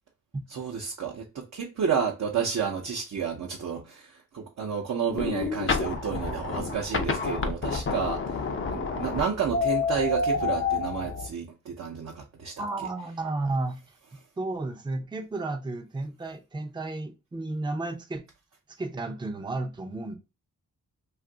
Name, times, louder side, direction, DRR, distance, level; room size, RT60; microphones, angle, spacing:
voice 1, 0.5-8.4 8.7-12.5, right 6 dB, 60° right, 0.7 m, -31 dB
sound 1, 5.1-11.3, left 4 dB, 40° left, 0.6 m, -29 dB
voice 2, 12.6-13.8 14.4-18.2 18.8-20.2, right 2 dB, 15° right, 0.5 m, -32 dB
2.6 x 2.4 x 3.7 m
cardioid pair, 85°, 32 cm